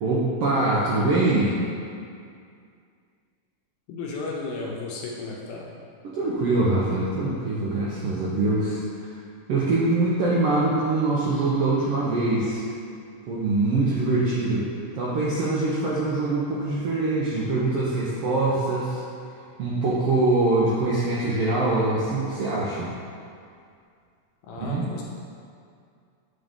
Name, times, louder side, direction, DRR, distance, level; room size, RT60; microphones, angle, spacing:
voice 1, 0.0-1.6 6.1-9.1 9.5-12.6 13.3-14.7 14.9-19.0 19.6-22.9 24.6-24.8, right 2 dB, 80° right, -6 dB, 1.3 m, -23 dB
voice 2, 3.9-5.8 24.4-25.0, left 3 dB, 75° left, -2 dB, 1.7 m, -34 dB
7.5 x 3.9 x 3.6 m, 2.3 s
omnidirectional pair, 3.5 m